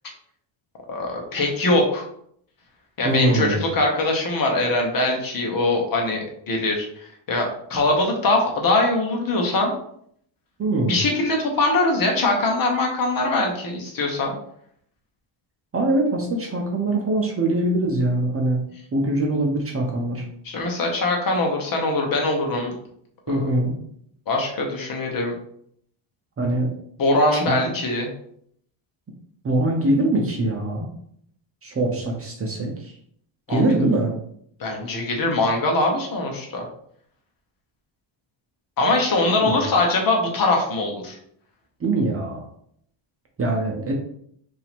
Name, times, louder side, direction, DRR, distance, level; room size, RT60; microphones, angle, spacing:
voice 1, 0.9-2.0 3.0-9.7 10.9-14.3 20.4-22.7 23.3-23.5 24.3-25.3 27.0-28.1 33.5-33.6 34.6-36.7 38.8-41.2, left 2 dB, 45° left, 1 dB, 1.2 m, -22 dB
voice 2, 3.0-3.7 10.6-11.0 15.7-18.6 18.9-20.2 23.3-23.8 26.4-26.7 27.3-27.7 29.4-30.9 31.6-32.9 33.5-34.2 39.4-39.6 41.8-42.5 43.4-43.9, right 2 dB, 30° right, 1 dB, 0.7 m, -23 dB
5.4 x 2.8 x 3.6 m, 0.67 s
cardioid pair, 160°, 48 cm